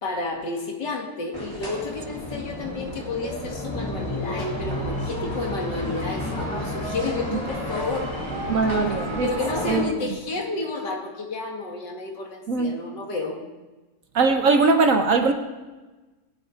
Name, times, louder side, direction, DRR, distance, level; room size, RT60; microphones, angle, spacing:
voice 1, 0.0-8.5 9.2-13.4, left 3 dB, 75° left, 2.8 m, -31 dB
sound 1, 1.3-9.9, left 1 dB, 15° left, 3.4 m, -31 dB
voice 2, 8.5-9.3 9.7-9.9 12.5-12.8 14.1-15.3, right 4 dB, 55° right, 1.1 m, -20 dB
26.0 x 9.1 x 4.0 m
omnidirectional pair, 1.9 m